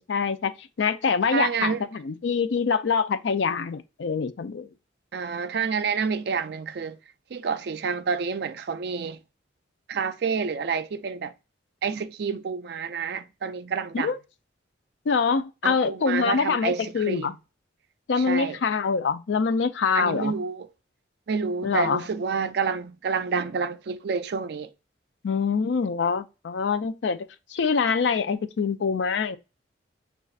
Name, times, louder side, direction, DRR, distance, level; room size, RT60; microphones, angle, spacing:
voice 1, 0.0-4.7 13.9-14.2 15.1-17.3 18.1-20.3 21.6-22.1 25.2-29.4, left 5 dB, 70° left, 0.4 m, -25 dB
voice 2, 1.3-1.8 5.1-7.0 7.3-9.2 9.9-11.3 11.8-14.1 15.6-17.3 18.2-18.6 19.9-20.7 21.3-24.7, right 5 dB, 55° right, 0.4 m, -28 dB
6.3 x 2.4 x 2.4 m
head